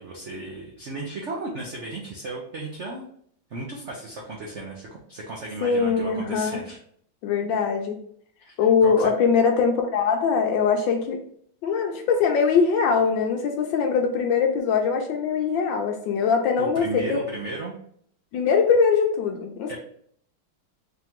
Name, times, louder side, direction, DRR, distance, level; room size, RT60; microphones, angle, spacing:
voice 1, 0.0-3.1 3.5-6.8 8.4-9.1 16.6-17.7 19.7-19.8, right 2 dB, 70° right, -2 dB, 0.7 m, -35 dB
voice 2, 5.6-6.6 7.2-8.0 8.6-11.2 11.6-17.2 18.3-19.8, left 5 dB, 75° left, 4 dB, 1.2 m, -22 dB
3.7 x 2.9 x 3.5 m, 0.63 s
omnidirectional pair, 2.2 m